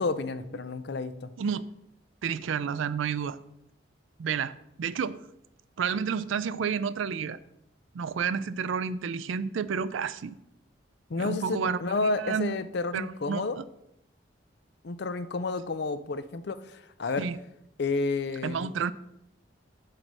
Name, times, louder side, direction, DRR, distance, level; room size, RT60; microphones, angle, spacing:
voice 1, 0.0-1.3 11.1-13.6 14.8-17.3 17.8-18.7, left 3 dB, 55° left, 12 dB, 0.5 m, -31 dB
voice 2, 2.2-3.4 4.2-4.5 4.8-5.2 5.8-7.4 7.9-10.3 11.2-12.5 12.9-13.6 17.2-17.4 18.4-18.9, right 6 dB, 75° right, 16 dB, 0.4 m, -30 dB
8.1 x 3.3 x 6.0 m, 0.79 s
head